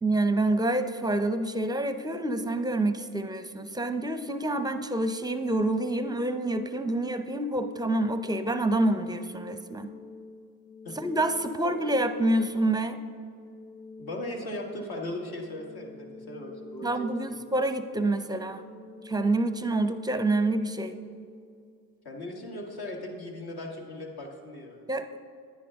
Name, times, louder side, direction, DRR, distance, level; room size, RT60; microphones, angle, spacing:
voice 1, 0.0-9.9 10.9-13.0 16.8-18.7 19.0-21.0 24.9-25.2, right 2 dB, 10° right, 10 dB, 0.6 m, -27 dB
sound 1, 7.6-22.6, left 3 dB, 20° left, 1.0 m, -47 dB
voice 2, 14.0-17.1 22.1-24.8, left 1 dB, 55° left, 1 dB, 1.9 m, -38 dB
10.0 x 9.8 x 3.6 m, 2.2 s
supercardioid pair, 60°, 43 cm